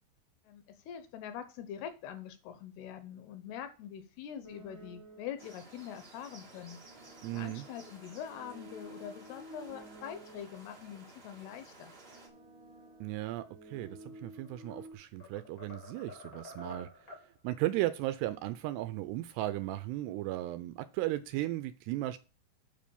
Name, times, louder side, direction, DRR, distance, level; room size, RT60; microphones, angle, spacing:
voice 1, 0.5-6.8 7.3-11.9, left 9 dB, 75° left, 10 dB, 2.6 m, -44 dB
sound 1, 4.4-5.5 6.3-10.8 11.5-14.9, right 1 dB, 40° right, 1.8 m, -53 dB
sound 2, 5.4-12.3, right 2 dB, 65° right, 0.5 m, -55 dB
voice 2, 7.2-7.6 13.0-16.9 17.4-22.2, right 16 dB, 85° right, 12 dB, 2.5 m, -35 dB
sound 3, 14.3-14.8 15.2-17.3, left 2 dB, 55° left, 1.0 m, -49 dB
7.6 x 5.2 x 6.9 m, 0.33 s
omnidirectional pair, 5.1 m